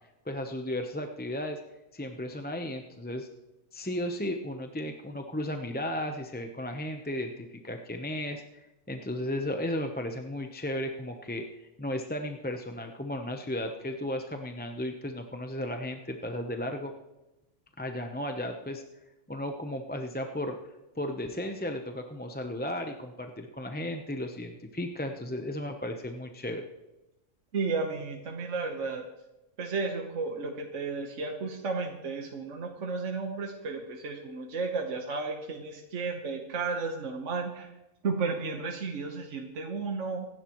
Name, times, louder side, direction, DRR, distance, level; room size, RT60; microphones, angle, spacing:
voice 1, 0.3-1.6 1.9-3.3 3.7-8.4 8.9-16.9 17.8-18.8 19.3-20.6 21.0-26.7, left 1 dB, 10° left, 4 dB, 0.6 m, -34 dB
voice 2, 27.5-29.1 29.6-37.7 38.0-40.3, right 4 dB, 70° right, 2 dB, 1.5 m, -33 dB
25.5 x 10.5 x 3.1 m, 1.0 s
omnidirectional pair, 1.3 m